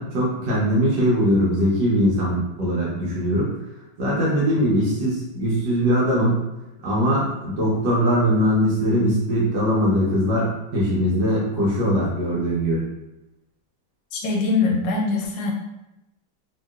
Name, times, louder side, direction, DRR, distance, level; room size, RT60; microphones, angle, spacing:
voice 1, 0.0-3.5 4.0-6.4 6.8-12.8, equal, 80° right, -6 dB, 1.5 m, -21 dB
voice 2, 14.1-15.5, left 4 dB, 85° left, -1 dB, 1.3 m, -22 dB
3.2 x 2.8 x 2.3 m, 0.94 s
omnidirectional pair, 1.9 m